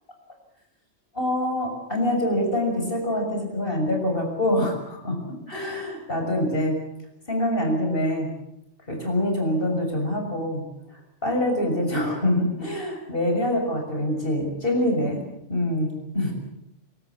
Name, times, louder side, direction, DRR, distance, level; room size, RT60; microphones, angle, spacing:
voice 1, 1.1-6.8 7.3-8.3 8.9-15.2 15.5-16.3, left 1 dB, 45° left, 2 dB, 6.8 m, -25 dB
27.0 x 18.0 x 8.5 m, 0.83 s
omnidirectional pair, 1.3 m